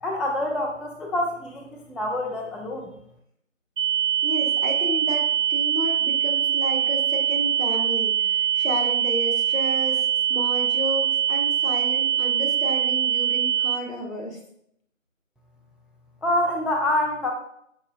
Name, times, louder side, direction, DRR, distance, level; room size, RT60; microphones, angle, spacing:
voice 1, 0.0-2.9 16.2-17.3, left 1 dB, ahead, 1 dB, 0.3 m, -26 dB
sound 1, 3.8-13.8, right 10 dB, 65° right, 0.7 m, -23 dB
voice 2, 4.2-14.4, equal, 75° left, -1 dB, 1.3 m, -32 dB
5.3 x 2.7 x 2.3 m, 0.72 s
figure-of-eight pair, 175°, 40 cm